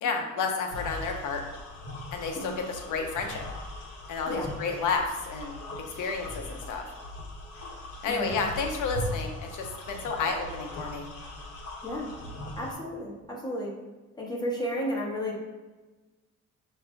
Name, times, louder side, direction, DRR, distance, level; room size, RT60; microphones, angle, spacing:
voice 1, 0.0-1.4 2.1-3.4 4.1-5.6 6.0-6.9 8.0-11.1, left 4 dB, 80° left, 3 dB, 0.8 m, -31 dB
sound 1, 0.7-12.7, left 1 dB, 55° left, 1.0 m, -40 dB
voice 2, 8.1-8.4 11.8-12.1 12.6-13.7 14.1-15.4, equal, 15° left, -4 dB, 1.3 m, -33 dB
6.2 x 2.8 x 2.3 m, 1.2 s
cardioid pair, 90°, 30 cm